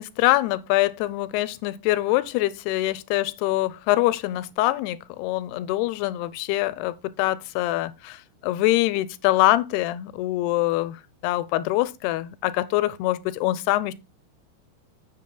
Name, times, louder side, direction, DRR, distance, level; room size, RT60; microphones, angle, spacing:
voice 1, 0.0-13.9, left 16 dB, 80° left, 2.5 m, -24 dB
14.0 x 7.4 x 2.2 m
omnidirectional pair, 4.8 m